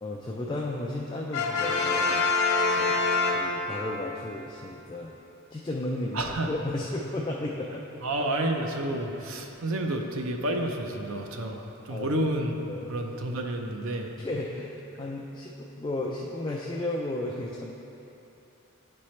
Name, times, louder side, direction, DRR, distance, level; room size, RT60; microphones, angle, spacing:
voice 1, 0.0-2.2 2.8-5.1 5.5-6.2 6.5-8.0 11.5-11.6 11.9-12.1 12.7-12.9 14.2-17.7, left 1 dB, 20° left, -3 dB, 0.3 m, -34 dB
Brass instrument, 1.3-4.0, left 3 dB, 90° left, 1.0 m, -25 dB
voice 2, 6.1-6.5 8.0-12.6 12.9-14.1, right 1 dB, 65° right, 3 dB, 0.6 m, -30 dB
10.5 x 4.3 x 3.2 m, 3.0 s
head